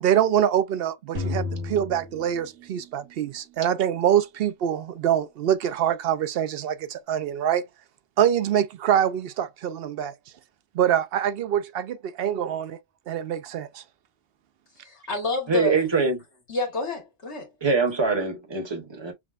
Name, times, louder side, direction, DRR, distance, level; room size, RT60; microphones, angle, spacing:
voice 1, 0.0-7.6 8.2-10.1 10.7-12.8 13.1-13.8, right 10 dB, 65° right, 0.7 m, -24 dB
sound 1, 1.1-3.3, left 3 dB, 80° right, 1.8 m, -33 dB
voice 2, 14.8-15.8 16.5-17.5, left 2 dB, 75° left, 1.8 m, -28 dB
voice 3, 15.5-16.2 17.6-19.1, right 4 dB, 25° right, 1.1 m, -24 dB
6.0 x 2.1 x 2.4 m
omnidirectional pair, 1.2 m